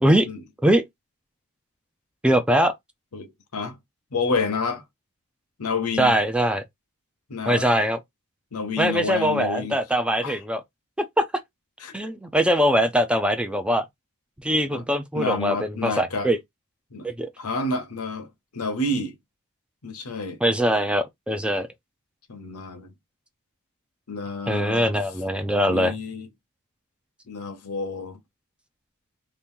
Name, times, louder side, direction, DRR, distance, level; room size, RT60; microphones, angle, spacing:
voice 1, 2.2-2.7 6.0-6.6 7.5-8.0 8.8-10.6 11.2-11.3 11.9-13.8 14.4-16.4 17.0-17.3 20.4-21.7 24.5-25.9, equal, 5° right, 0.4 m, -22 dB
voice 2, 3.1-3.8 4.1-4.8 5.6-6.2 7.3-7.7 8.5-9.7 10.2-10.4 11.8-11.9 14.7-14.8 15.1-16.3 16.9-17.1 17.4-19.1 19.8-20.4 22.3-22.9 24.1-24.9 25.6-26.3 27.3-28.2, left 3 dB, 80° left, 0.9 m, -29 dB
2.9 x 2.6 x 3.6 m
head